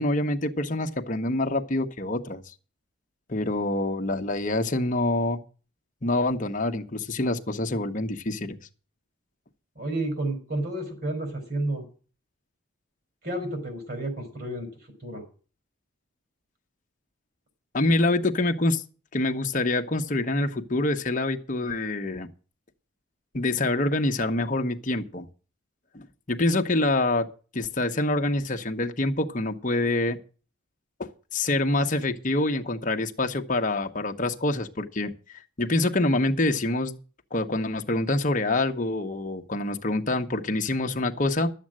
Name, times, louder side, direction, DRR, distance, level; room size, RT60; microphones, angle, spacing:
voice 1, 0.0-2.5 3.3-5.4 6.0-8.6 17.7-18.8 19.1-22.3 23.3-25.3 25.9-27.3 27.5-30.2 31.0-37.0 37.3-41.5, left 2 dB, 40° left, 1.0 m, -26 dB
voice 2, 9.8-11.8 13.2-14.7 15.0-15.2, right 1 dB, 50° right, 4.2 m, -31 dB
12.0 x 7.5 x 7.5 m
head